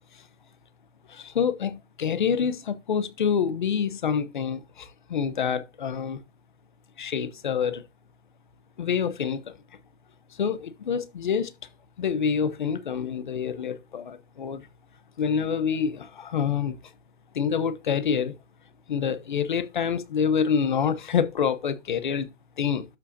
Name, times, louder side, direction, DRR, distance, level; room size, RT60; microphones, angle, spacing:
voice 1, 1.1-6.2 7.0-7.8 8.8-9.4 10.4-11.5 12.0-14.6 15.2-16.8 17.3-18.3 18.9-22.3 22.6-22.9, left 7 dB, 40° left, 1.0 m, -27 dB
12.0 x 5.1 x 2.8 m
hypercardioid pair, 175°, 37 cm